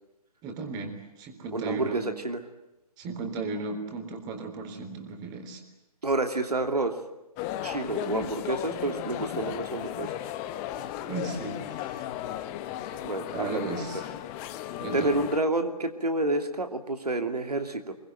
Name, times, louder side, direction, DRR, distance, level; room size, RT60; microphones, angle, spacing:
voice 1, 0.4-2.0 3.0-5.6 11.1-12.1 13.3-14.0 14.8-15.1, right 3 dB, 20° right, 5 dB, 3.9 m, -35 dB
voice 2, 1.5-2.4 6.0-6.9 7.6-10.1 13.0-13.7 14.9-17.9, right 2 dB, 75° right, 7 dB, 2.8 m, -29 dB
sound 1, 7.4-15.4, left 12 dB, 20° left, 1.1 m, -35 dB
25.0 x 23.5 x 9.2 m, 0.95 s
figure-of-eight pair, 135°, 20 cm